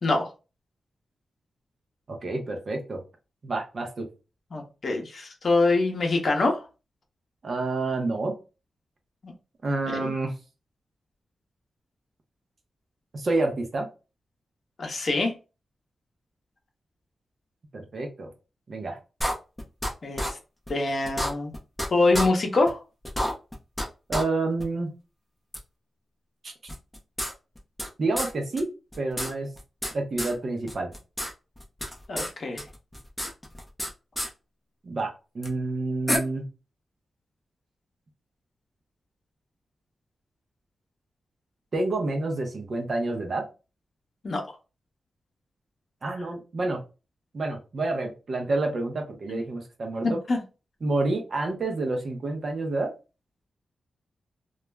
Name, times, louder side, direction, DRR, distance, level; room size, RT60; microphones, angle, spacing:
voice 1, 2.1-3.0 3.4-4.1 7.4-8.4 9.6-10.3 13.1-13.9 17.7-18.3 18.7-19.0 24.1-24.9 26.4-26.5 28.0-28.7 29.0-29.5 29.9-30.9 34.8-36.5 41.7-43.4 46.0-46.8 47.3-50.2 50.8-52.9, right 2 dB, 45° right, 0.5 m, -28 dB
voice 2, 4.5-6.6 9.2-9.3 9.9-10.1 14.8-15.4 20.0-20.4 20.7-21.5 21.9-22.8 32.1-32.6 44.2-44.4 49.3-49.4 50.0-50.4, left 3 dB, 45° left, 0.7 m, -25 dB
sound 1, 19.2-19.9 20.2-20.3 20.7-20.8 21.1-21.9 22.1-22.3 22.7-22.8 23.0-23.9 24.1-24.2 24.6-24.7 25.5-25.6 26.7-27.9 28.2-28.3 28.6-28.7 28.9-29.9 30.2-30.3 30.7-31.3 31.6-32.3 32.6-33.9 34.2-34.3 35.4-35.5 36.1-36.2, equal, 5° left, 0.5 m, -29 dB
2.3 x 2.0 x 3.2 m
wide cardioid pair, 160°, 0 cm